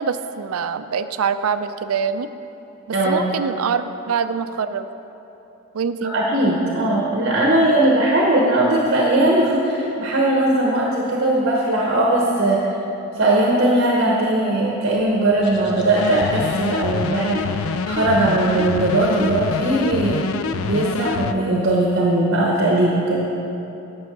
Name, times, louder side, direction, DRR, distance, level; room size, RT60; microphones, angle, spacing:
voice 1, 0.0-2.3 3.1-4.9 5.7-6.1, right 6 dB, 80° right, 11 dB, 0.4 m, -24 dB
voice 2, 2.9-3.3 6.0-12.6 13.1-23.3, right 1 dB, 50° right, -2 dB, 1.0 m, -19 dB
sound 1, 15.1-20.4, left 1 dB, 50° left, 1.0 m, -39 dB
sound 2, 15.9-21.3, left 5 dB, 70° left, 0.4 m, -26 dB
9.6 x 6.3 x 6.0 m, 3.0 s
head